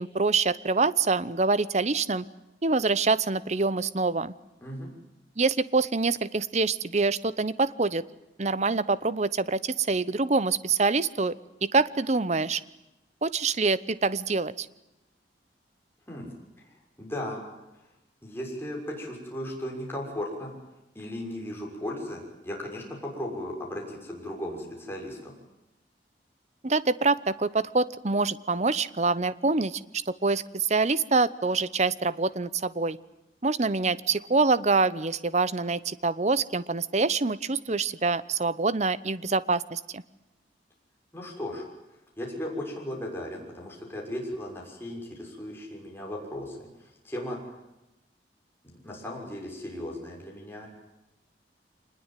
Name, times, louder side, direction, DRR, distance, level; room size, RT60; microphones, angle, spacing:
voice 1, 0.0-2.3 2.6-4.3 5.4-8.0 8.4-11.3 11.6-12.6 13.2-14.7 26.6-33.0 33.4-40.0, right 3 dB, 40° right, 17 dB, 0.8 m, -25 dB
voice 2, 4.6-4.9 16.1-16.3 16.6-16.7 17.0-17.4 18.2-20.5 20.9-25.3 41.1-41.6 42.2-47.4 48.6-50.7, left 1 dB, 15° left, -2 dB, 6.4 m, -36 dB
25.5 x 20.5 x 9.2 m, 0.95 s
head